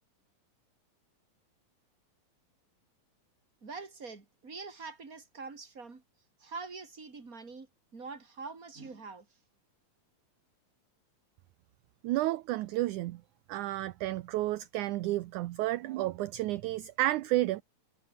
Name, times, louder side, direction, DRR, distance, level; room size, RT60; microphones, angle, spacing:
voice 1, 3.6-6.0 6.4-7.7 7.9-9.3, right 4 dB, 25° right, 3.7 m, -44 dB
voice 2, 12.0-13.2 13.5-17.6, right 16 dB, 75° right, 1.9 m, -31 dB
omnidirectional pair, 4.2 m